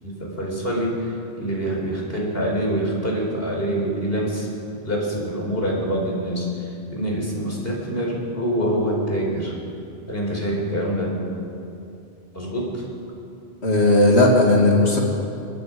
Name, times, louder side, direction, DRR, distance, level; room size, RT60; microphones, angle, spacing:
voice 1, 0.0-4.5 4.8-9.5 10.1-11.2 12.3-12.9, equal, 65° left, -2 dB, 4.7 m, -25 dB
voice 2, 13.6-15.0, left 1 dB, 80° left, -1 dB, 2.8 m, -16 dB
23.5 x 20.5 x 5.3 m, 2.6 s
omnidirectional pair, 1.1 m